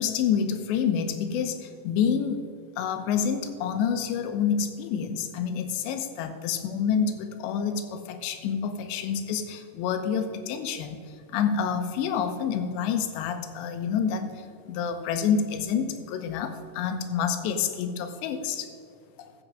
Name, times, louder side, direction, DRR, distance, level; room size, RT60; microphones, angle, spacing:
voice 1, 0.0-2.4 2.8-11.0 11.3-18.7 19.2-19.3, left 7 dB, 85° left, 8 dB, 3.1 m, -28 dB
15.0 x 6.2 x 6.2 m, 2.2 s
omnidirectional pair, 5.0 m